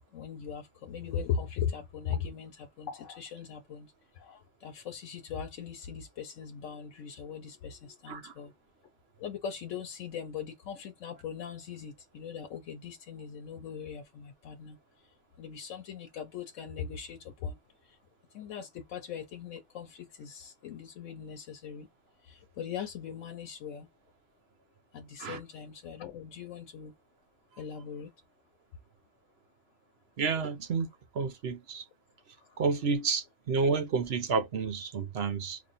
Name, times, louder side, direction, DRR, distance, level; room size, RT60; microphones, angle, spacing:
voice 1, 0.1-3.9 4.2-8.5 9.2-14.8 15.4-17.6 18.3-21.9 22.3-23.9 24.9-26.9 27.6-28.1, left 7 dB, 85° left, 1.1 m, -39 dB
voice 2, 30.2-30.9 31.1-31.8 32.6-35.6, right 5 dB, 60° right, 0.9 m, -30 dB
3.1 x 2.3 x 4.0 m
omnidirectional pair, 1.3 m